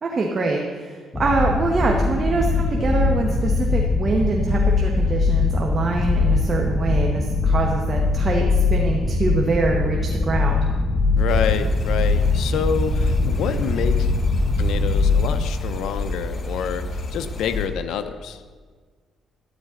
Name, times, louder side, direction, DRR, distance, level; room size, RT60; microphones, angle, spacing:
voice 1, 0.0-8.4 8.7-10.6, right 3 dB, 40° right, 0 dB, 1.2 m, -24 dB
sound 1, 1.1-15.5, left 3 dB, 25° left, 1.0 m, -21 dB
voice 2, 11.2-14.1 14.6-18.4, left 7 dB, 80° left, 9 dB, 0.6 m, -27 dB
sound 2, 11.3-17.7, left 2 dB, 40° left, 1.2 m, -30 dB
12.5 x 10.0 x 3.8 m, 1.5 s
cardioid pair, 90°, 0 cm